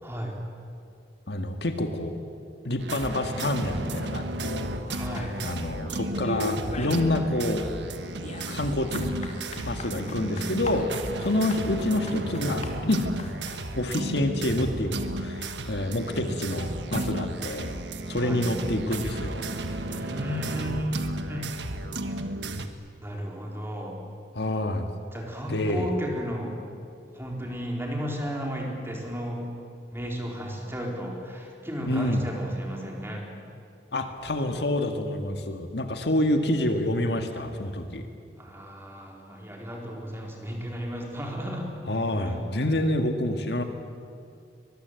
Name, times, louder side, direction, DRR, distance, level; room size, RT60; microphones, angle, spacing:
voice 1, 0.0-0.4 4.9-5.4 18.2-18.5 19.9-21.5 23.0-24.0 25.1-26.6 27.1-29.4 29.9-33.2 38.4-41.7 42.2-42.4, equal, 15° right, 0 dB, 4.1 m, -34 dB
voice 2, 1.3-2.2 2.6-4.7 5.4-7.6 8.5-10.9 11.2-13.1 13.8-17.7 18.1-19.4 24.4-24.9 25.5-25.9 31.9-32.2 33.9-38.1 41.9-43.6, left 1 dB, 65° left, 6 dB, 1.8 m, -27 dB
sound 1, 2.8-22.7, right 1 dB, 85° right, 1.5 m, -33 dB
sound 2, 4.9-5.9 6.2-7.1 7.4-13.7, left 2 dB, 40° left, 2.9 m, -38 dB
23.5 x 21.0 x 8.3 m, 2.4 s
head